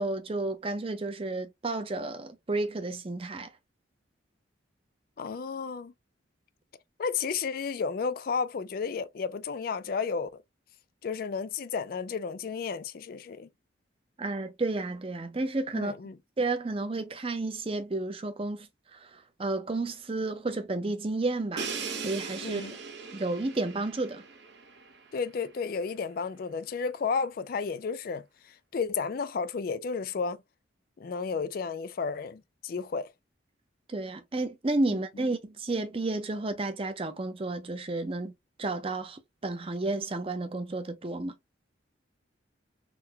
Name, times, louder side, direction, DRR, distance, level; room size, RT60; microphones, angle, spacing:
voice 1, 0.0-3.5 14.2-15.9 16.4-21.7 22.0-22.6 23.1-24.2 33.9-38.3 38.6-41.3, right 2 dB, 30° right, 0.5 m, -31 dB
voice 2, 5.2-5.9 7.0-10.3 11.0-13.5 15.7-16.2 22.4-22.7 25.1-30.4 31.0-33.1, left 5 dB, 45° left, 0.3 m, -32 dB
Crash cymbal, 21.6-25.4, right 5 dB, 60° right, 0.8 m, -39 dB
3.8 x 2.1 x 2.7 m
head